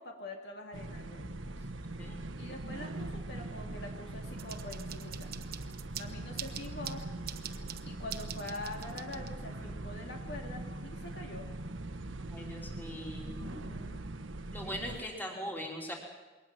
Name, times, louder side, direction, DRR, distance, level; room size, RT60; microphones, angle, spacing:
voice 1, 0.0-1.7 2.4-5.3 6.0-7.0 7.9-11.5 13.4-14.1 14.6-15.2, left 2 dB, 60° left, 2 dB, 2.4 m, -45 dB
sound 1, 0.7-15.0, right 2 dB, 85° right, 1.3 m, -42 dB
sound 2, 4.4-9.6, right 10 dB, 50° right, 1.1 m, -45 dB
voice 2, 12.2-13.7 14.5-15.9, equal, 10° left, 0 dB, 3.5 m, -41 dB
22.0 x 19.0 x 7.6 m, 1.2 s
head